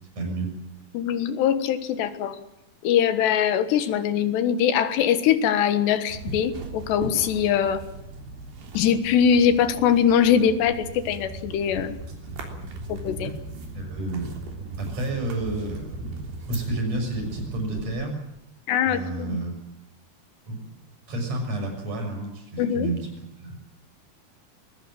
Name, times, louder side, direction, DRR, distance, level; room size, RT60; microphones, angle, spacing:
voice 1, 0.2-0.5 13.7-14.3 14.8-16.1 16.4-18.2 18.8-19.5 20.5-20.7 21.1-23.0 23.4-23.6, right 2 dB, 40° right, 3 dB, 7.5 m, -30 dB
voice 2, 0.9-2.4 2.8-7.8 8.8-12.0 12.9-13.3 18.7-19.4 22.6-22.9, left 8 dB, 90° left, 10 dB, 3.6 m, -22 dB
sound 1, 6.1-17.9, right 3 dB, 70° right, 5.3 m, -38 dB
21.5 x 21.5 x 7.6 m, 0.84 s
omnidirectional pair, 4.8 m